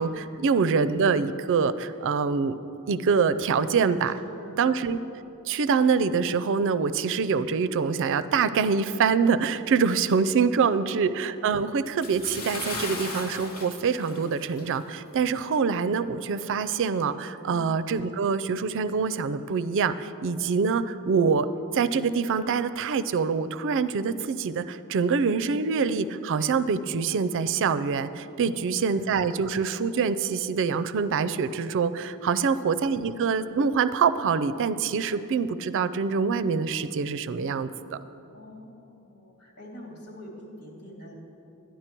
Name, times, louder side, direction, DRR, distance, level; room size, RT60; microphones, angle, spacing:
voice 1, 0.0-2.6 2.9-4.2 4.6-5.0 5.5-21.5 21.7-38.0, right 5 dB, 60° right, 13 dB, 0.4 m, -25 dB
voice 2, 4.2-4.8 17.5-17.6 28.4-29.0 32.2-32.7 38.3-41.2, left 1 dB, 90° left, -2 dB, 2.8 m, -46 dB
Bathtub (filling or washing) / Splash splatter, 12.0-14.9 15.2-15.4 15.9-16.0, left 2 dB, 70° left, 1.3 m, -37 dB
12.0 x 10.5 x 4.5 m, 2.9 s
head